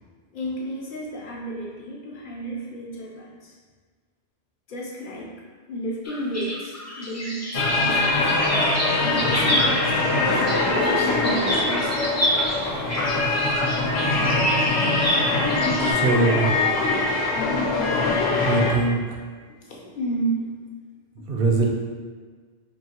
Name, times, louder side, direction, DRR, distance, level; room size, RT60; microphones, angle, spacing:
voice 1, 0.3-3.5 4.7-5.3 5.7-8.3 9.0-12.2 14.6-14.9 19.7-20.5, right 1 dB, 55° left, -4 dB, 0.8 m, -32 dB
sound 1, 6.0-15.9, equal, 20° left, 0.5 m, -28 dB
sound 2, 7.5-18.7, left 2 dB, 85° left, 0.9 m, -23 dB
voice 2, 15.8-16.5 18.4-19.2 21.3-21.7, right 3 dB, 65° right, 0 dB, 0.8 m, -22 dB
4.5 x 2.8 x 2.8 m, 1.5 s
omnidirectional pair, 1.1 m